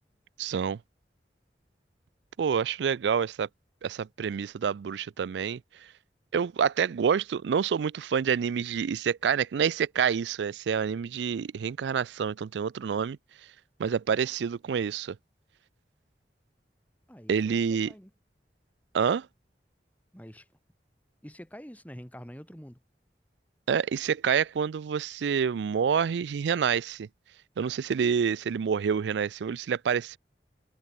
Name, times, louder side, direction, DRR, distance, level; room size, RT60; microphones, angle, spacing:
voice 1, 0.4-0.8 2.4-3.5 3.8-5.6 6.3-13.2 13.8-15.2 17.3-17.9 18.9-19.3 23.7-27.1 27.6-30.2, right 7 dB, 85° right, 0.4 m, -27 dB
voice 2, 17.1-18.1 20.1-20.5 21.2-22.8, equal, 10° left, 3.2 m, -46 dB
head